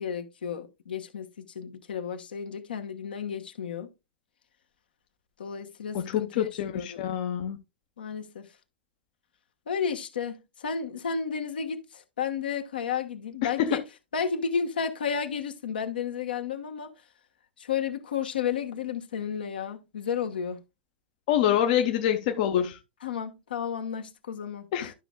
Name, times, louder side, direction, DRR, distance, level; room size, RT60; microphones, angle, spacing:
voice 1, 0.0-3.9 5.4-6.5 6.7-7.0 8.0-8.5 9.7-13.8 14.1-16.9 17.6-20.6 23.0-24.9, left 7 dB, 65° left, 1.2 m, -32 dB
voice 2, 5.9-7.6 13.4-13.8 21.3-22.8 24.7-24.9, left 10 dB, 50° left, 0.9 m, -26 dB
12.5 x 6.0 x 2.2 m
figure-of-eight pair, 95°, 6 cm